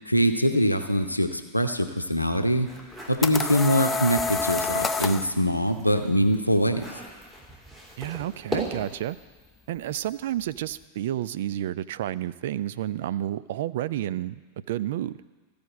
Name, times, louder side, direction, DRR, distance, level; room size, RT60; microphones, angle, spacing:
voice 1, 0.1-2.7 3.1-6.9, equal, 85° left, 7 dB, 0.7 m, -23 dB
sound 1, 2.6-4.8 5.2-9.0, equal, 15° right, 2.8 m, -39 dB
sound 2, 2.8-5.3, left 4 dB, 15° left, 0.5 m, -28 dB
voice 2, 8.0-9.2 9.7-14.4 14.7-15.1, right 12 dB, 55° right, 16 dB, 0.3 m, -30 dB
14.0 x 5.1 x 8.1 m, 1.3 s
figure-of-eight pair, 90°, 0 cm